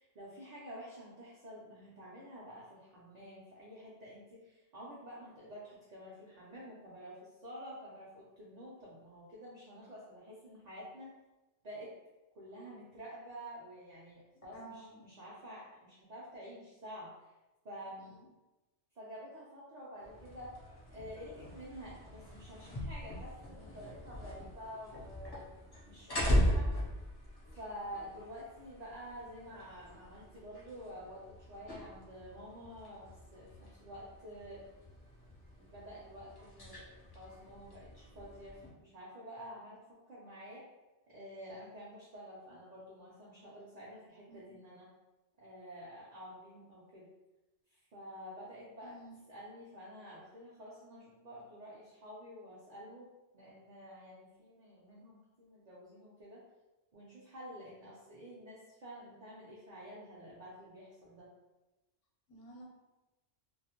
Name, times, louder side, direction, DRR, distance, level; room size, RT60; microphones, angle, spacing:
voice 1, 0.0-11.1 11.6-11.9 12.3-17.3 17.6-18.2 19.0-20.6 20.9-26.7 27.5-34.6 35.6-40.6 41.1-44.9 45.4-47.1 47.7-49.0 49.3-56.4 56.9-61.3, equal, 55° right, -7 dB, 0.5 m, -49 dB
voice 2, 14.5-15.0 18.0-18.3 44.3-44.6 48.8-49.2 62.3-62.7, right 2 dB, 80° left, -1 dB, 1.0 m, -52 dB
sound 1, 20.0-38.7, equal, 35° left, 0.4 m, -39 dB
2.3 x 2.0 x 2.8 m, 1.1 s
omnidirectional pair, 1.2 m